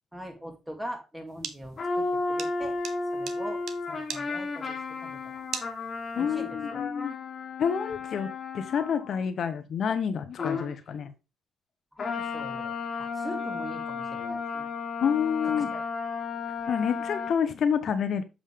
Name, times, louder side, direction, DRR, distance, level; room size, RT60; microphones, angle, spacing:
voice 1, 0.1-2.8 3.1-5.4 6.2-6.8 11.9-14.7 15.4-15.8, equal, 10° right, 2.3 m, -42 dB
sound 1, 1.3-6.2, right 7 dB, 70° right, 0.9 m, -40 dB
sound 2, 1.8-9.3 10.4-10.8 12.0-17.3, left 4 dB, 40° left, 1.7 m, -33 dB
voice 2, 6.2-7.1 7.6-8.3 8.5-11.1 15.0-15.7 16.7-18.2, left 7 dB, 60° left, 0.8 m, -28 dB
7.5 x 5.0 x 3.6 m
cardioid pair, 90°, 0 cm